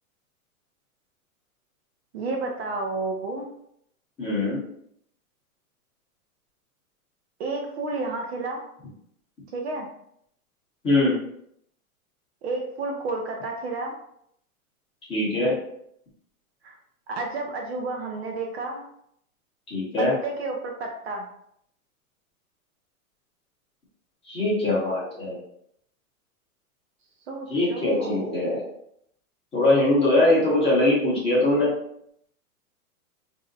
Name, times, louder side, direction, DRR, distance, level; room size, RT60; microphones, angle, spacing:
voice 1, 2.1-3.5 7.4-8.6 9.5-9.9 12.4-13.9 16.6-16.7 17.1-18.8 20.0-21.3 27.3-28.4, right 3 dB, 50° right, 1 dB, 0.5 m, -31 dB
voice 2, 4.2-4.6 10.8-11.1 15.1-15.5 19.7-20.1 24.3-25.4 27.5-28.6 29.5-31.7, left 2 dB, 15° left, -7 dB, 0.8 m, -22 dB
2.7 x 2.0 x 3.8 m, 0.72 s
hypercardioid pair, 145°, 44 cm